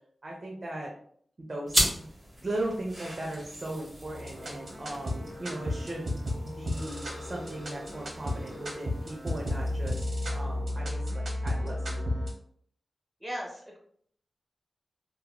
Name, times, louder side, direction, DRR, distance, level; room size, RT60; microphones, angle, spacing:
voice 1, 0.2-0.9 1.4-2.1 2.4-12.0, right 1 dB, 45° right, -2 dB, 0.6 m, -38 dB
sound 1, 1.7-10.7, equal, 25° right, 1.2 m, -37 dB
sound 2, 4.0-12.3, left 1 dB, 70° right, 0.9 m, -33 dB
voice 2, 13.2-13.8, equal, 5° right, -3 dB, 1.0 m, -37 dB
2.9 x 2.7 x 2.2 m, 0.63 s
wide cardioid pair, 90°, 0 cm